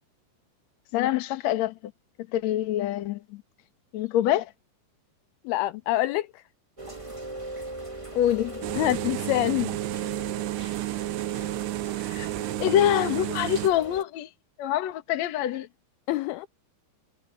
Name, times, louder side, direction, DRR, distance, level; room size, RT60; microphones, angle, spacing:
voice 1, 0.9-1.7 2.3-3.4 3.9-4.5 8.1-8.6 12.0-12.3 12.6-14.3 14.6-15.7, left 12 dB, 60° left, 1.9 m, -25 dB
voice 2, 5.5-6.3 8.8-9.8 16.1-16.5, left 17 dB, 85° left, 2.2 m, -26 dB
Rain, 6.8-14.0, right 2 dB, 15° right, 1.2 m, -39 dB
sound 1, 8.6-13.7, right 21 dB, 80° right, 2.7 m, -31 dB
omnidirectional pair, 5.0 m